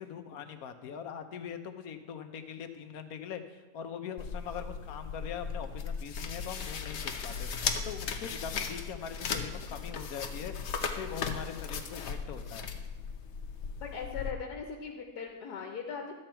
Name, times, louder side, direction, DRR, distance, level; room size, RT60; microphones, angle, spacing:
voice 1, 0.0-10.5 10.9-12.7, left 8 dB, 70° left, 8 dB, 1.2 m, -42 dB
sound 1, 4.2-14.3, left 5 dB, 55° left, 1.0 m, -37 dB
voice 2, 13.8-16.1, left 6 dB, 90° left, 2 dB, 1.5 m, -39 dB
12.5 x 7.7 x 4.4 m, 1.3 s
omnidirectional pair, 1.6 m